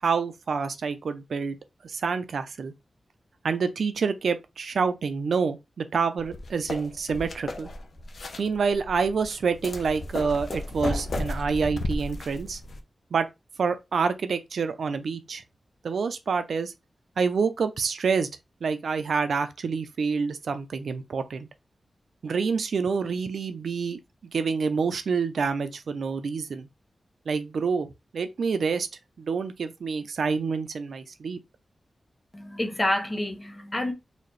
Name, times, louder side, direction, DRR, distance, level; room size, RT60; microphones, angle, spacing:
voice 1, 0.0-1.6 1.8-2.7 3.4-7.7 8.4-12.6 13.1-13.3 13.6-15.4 15.8-16.7 17.2-18.3 18.6-21.5 22.2-24.0 24.3-26.7 27.3-27.9 28.1-28.9 29.2-31.4, right 5 dB, 85° right, 0.5 m, -27 dB
sound 1, 6.2-12.8, left 2 dB, 55° left, 0.7 m, -34 dB
voice 2, 32.3-33.9, left 1 dB, 20° left, 0.8 m, -28 dB
4.2 x 2.8 x 3.2 m
wide cardioid pair, 170°, 0 cm